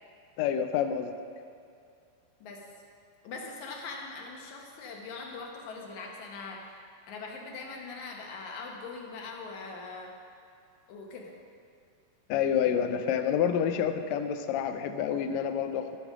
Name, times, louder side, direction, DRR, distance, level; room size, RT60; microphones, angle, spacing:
voice 1, 0.4-1.1 12.3-15.9, left 8 dB, 90° left, 7 dB, 1.5 m, -28 dB
voice 2, 3.2-6.7 7.1-10.1 10.9-11.4, left 4 dB, 65° left, 0 dB, 2.5 m, -41 dB
15.5 x 5.3 x 6.0 m, 2.4 s
omnidirectional pair, 3.8 m